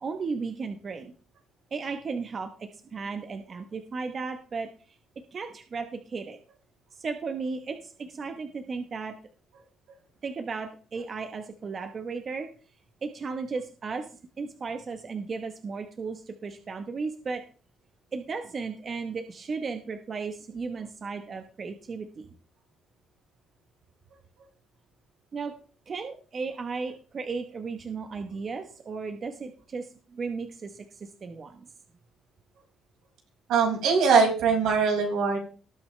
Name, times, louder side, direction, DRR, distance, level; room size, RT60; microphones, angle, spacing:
voice 1, 0.0-1.1 1.7-2.5 2.9-4.7 5.3-5.9 6.1-6.4 7.0-7.8 8.2-9.1 10.2-12.5 13.0-14.0 14.4-16.2 16.4-17.4 18.1-22.1 25.3-25.5 25.9-29.8 30.2-30.7 31.2-31.5, right 4 dB, 35° right, 6 dB, 1.0 m, -34 dB
voice 2, 33.5-35.4, right 5 dB, 80° right, 0 dB, 5.4 m, -22 dB
19.0 x 8.4 x 3.2 m, 0.39 s
cardioid pair, 145°, 0 cm